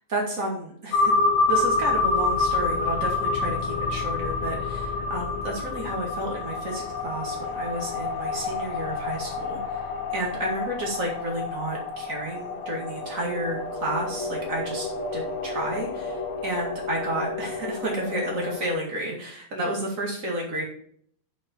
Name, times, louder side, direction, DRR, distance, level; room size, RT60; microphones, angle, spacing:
voice 1, 0.1-9.9 10.1-14.9 15.1-20.6, right 1 dB, 70° right, -2 dB, 0.7 m, -31 dB
sound 1, 0.9-18.7, left 3 dB, 85° left, 3.9 m, -28 dB
10.0 x 5.1 x 4.5 m, 0.62 s
omnidirectional pair, 5.2 m